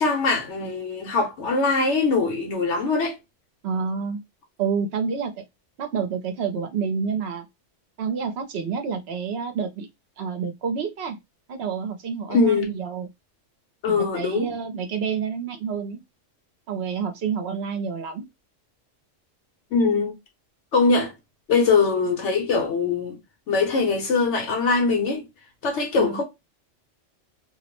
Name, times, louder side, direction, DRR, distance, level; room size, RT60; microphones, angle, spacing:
voice 1, 0.0-3.2 12.3-12.7 13.8-14.5 19.7-20.1 20.7-21.1 21.5-23.2 23.5-25.2 25.6-26.2, left 4 dB, 70° left, 1.0 m, -22 dB
voice 2, 3.6-4.2 4.6-5.4 5.8-7.5 8.0-9.9 10.2-11.2 11.5-13.1 13.9-16.0 16.7-18.3 26.0-26.2, right 6 dB, 65° right, 0.8 m, -28 dB
2.5 x 2.0 x 2.8 m
omnidirectional pair, 1.3 m